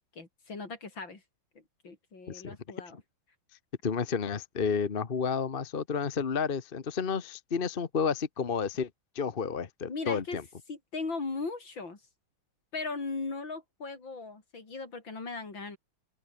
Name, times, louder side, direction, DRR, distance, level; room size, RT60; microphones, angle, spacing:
voice 1, 0.1-1.2 1.5-3.0 9.9-10.4 10.7-12.0 12.7-15.8, left 3 dB, 60° left, 5.1 m, -38 dB
voice 2, 3.8-8.9 9.1-10.4, left 6 dB, 35° left, 1.0 m, -31 dB
open air
omnidirectional pair, 2.3 m